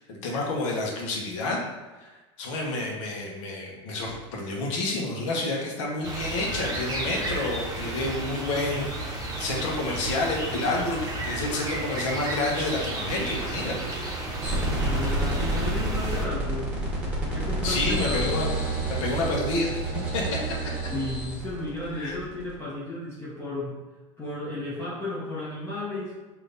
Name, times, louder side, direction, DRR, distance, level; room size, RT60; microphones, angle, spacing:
voice 1, 0.1-1.6 2.0-14.0 17.6-18.5 18.9-19.8 20.1-20.4 21.9-22.2, left 2 dB, 75° left, -1 dB, 1.1 m, -29 dB
sound 1, 6.0-16.2, right 2 dB, 25° right, 0.9 m, -33 dB
sound 2, 14.4-22.5, right 2 dB, 10° right, 1.3 m, -29 dB
voice 2, 14.8-16.8 17.3-18.2 20.9-23.8 24.2-26.1, left 1 dB, 15° left, -7 dB, 0.8 m, -33 dB
3.4 x 2.9 x 3.8 m, 1.2 s
supercardioid pair, 115°, 16 cm